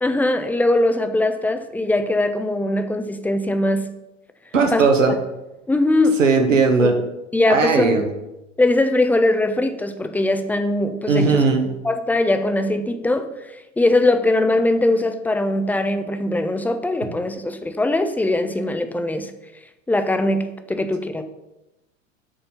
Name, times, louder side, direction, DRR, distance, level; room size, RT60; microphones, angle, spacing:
voice 1, 0.0-3.9 4.7-4.8 5.7-6.2 6.5-6.9 7.3-8.1 8.6-11.5 11.8-19.3 19.9-21.2, left 2 dB, 5° left, 8 dB, 0.4 m, -21 dB
voice 2, 4.5-5.1 6.2-6.9 7.5-8.0 11.1-11.6, right 4 dB, 80° right, 5 dB, 1.3 m, -17 dB
10.5 x 4.3 x 5.6 m, 0.96 s
figure-of-eight pair, 85°, 38 cm